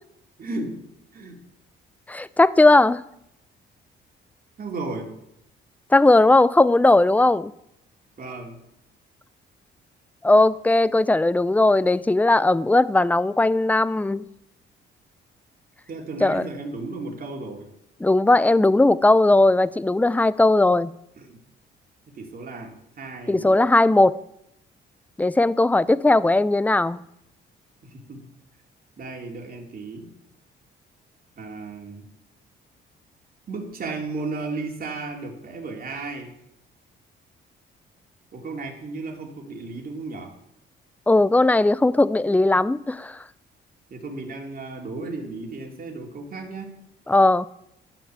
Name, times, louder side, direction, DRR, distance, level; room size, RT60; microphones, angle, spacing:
voice 1, 0.4-0.8 1.1-1.4 4.6-5.2 8.2-8.6 15.9-17.7 21.2-21.4 22.1-23.6 27.8-28.3 29.0-30.1 31.4-32.1 33.5-36.3 38.3-40.3 43.9-46.8, right 3 dB, 45° right, 2.8 m, -34 dB
voice 2, 2.1-3.0 5.9-7.5 10.2-14.2 16.2-16.4 18.0-20.9 23.3-24.2 25.2-27.0 41.1-43.2 47.1-47.5, left 2 dB, 10° left, 0.4 m, -18 dB
12.0 x 6.1 x 8.1 m
cardioid pair, 90°, 20 cm